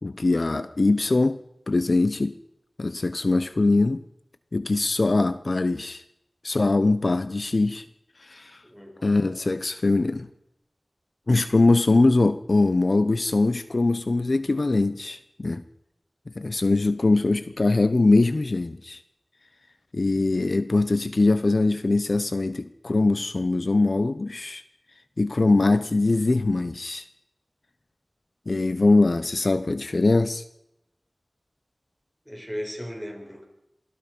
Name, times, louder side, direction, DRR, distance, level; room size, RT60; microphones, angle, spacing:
voice 1, 0.0-2.4 2.8-4.0 4.5-6.0 6.4-7.8 8.2-8.6 9.0-10.3 11.3-15.6 16.4-19.0 19.9-24.6 25.2-27.1 28.5-30.4, left 2 dB, 65° left, 0.9 m, -22 dB
voice 2, 8.6-9.3 32.3-33.4, equal, ahead, 7.7 m, -37 dB
28.0 x 20.0 x 5.4 m
wide cardioid pair, 45°, 0 cm